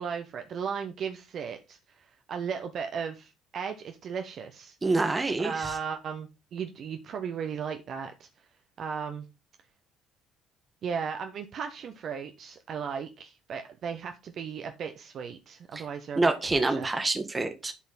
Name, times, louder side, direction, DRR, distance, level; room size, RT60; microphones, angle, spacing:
voice 1, 0.0-4.8 5.4-8.3 8.8-9.2 10.8-16.9, right 6 dB, 50° right, 6 dB, 0.8 m, -36 dB
voice 2, 4.8-5.8 15.7-15.8 16.2-17.7, right 3 dB, 20° right, 7 dB, 1.5 m, -27 dB
11.0 x 4.1 x 4.0 m, 0.27 s
figure-of-eight pair, 50°, 0 cm